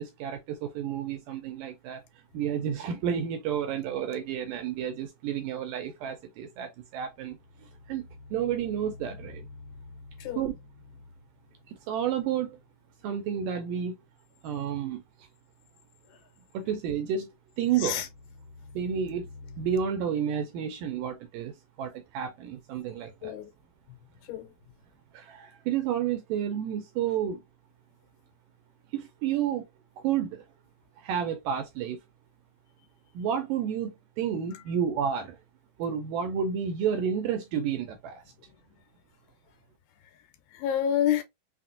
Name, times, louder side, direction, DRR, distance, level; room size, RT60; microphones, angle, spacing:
voice 1, 0.0-2.0 2.3-8.0 8.3-9.5 10.4-10.5 11.7-12.6 13.0-14.0 14.4-15.0 16.5-17.3 17.6-18.0 18.8-19.3 19.6-23.3 25.1-27.4 28.9-29.7 30.0-30.5 31.0-32.0 33.1-35.4 35.8-38.2, right 8 dB, 85° right, 1.9 m, -31 dB
sound 1, 7.3-13.2 13.5-13.6 17.6-19.8, left 3 dB, 60° left, 1.8 m, -49 dB
voice 2, 17.8-18.1 23.2-23.5 23.9-24.0 24.2-24.5 34.5-34.6 38.4-38.6 40.0-40.2 40.5-41.2, left 10 dB, 85° left, 2.8 m, -30 dB
5.8 x 2.1 x 2.6 m
omnidirectional pair, 4.3 m